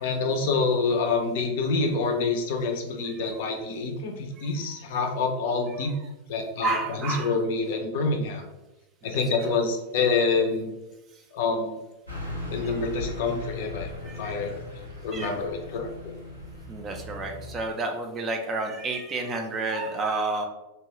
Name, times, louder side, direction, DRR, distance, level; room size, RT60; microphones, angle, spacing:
voice 1, 0.0-5.9 6.3-8.4 9.0-10.7 11.3-11.8 12.5-13.9 14.2-14.6 15.0-15.9, left 4 dB, 50° left, 4 dB, 0.5 m, -27 dB
voice 2, 4.4-4.8 6.6-7.3 9.0-9.2 14.0-14.4 15.1-15.3 16.7-20.5, right 3 dB, 25° right, 3 dB, 0.4 m, -30 dB
Car passing by / Truck, 12.1-17.6, left 2 dB, 90° left, 0.7 m, -38 dB
2.8 x 2.2 x 2.9 m, 0.99 s
figure-of-eight pair, 90°, 0 cm